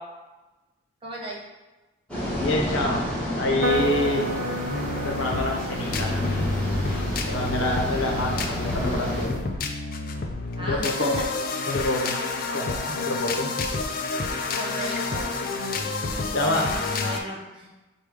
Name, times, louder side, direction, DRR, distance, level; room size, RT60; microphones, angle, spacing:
voice 1, 1.0-1.4 7.3-8.0 10.6-11.3 14.5-15.4 16.5-17.7, right 1 dB, 25° right, -3 dB, 0.7 m, -35 dB
sound 1, 2.1-9.3, equal, 5° left, 1.2 m, -30 dB
voice 2, 2.3-3.0 3.3-4.3 5.0-6.3 7.2-9.5 10.6-11.1 11.7-12.2 12.5-13.5 15.9-16.0 16.3-16.7, left 2 dB, 85° left, 1 dB, 0.8 m, -27 dB
sound 2, 3.6-17.2, left 3 dB, 45° left, 0.4 m, -30 dB
sound 3, 3.6-9.4, right 2 dB, 85° right, 0.4 m, -34 dB
4.8 x 2.3 x 4.8 m, 1.1 s
head